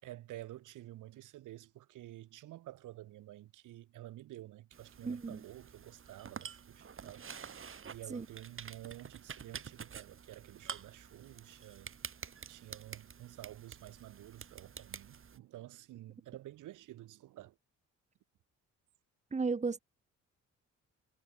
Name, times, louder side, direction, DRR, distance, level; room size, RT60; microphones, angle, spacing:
voice 1, 0.0-7.2 7.9-11.9 12.5-17.6, right 14 dB, 85° right, 6.6 m, -50 dB
sound 1, 4.7-15.4, right 7 dB, 45° right, 3.4 m, -49 dB
voice 2, 5.0-5.4 8.1-8.2 19.3-19.8, right 4 dB, 25° right, 1.3 m, -34 dB
cardioid pair, 90°, 30 cm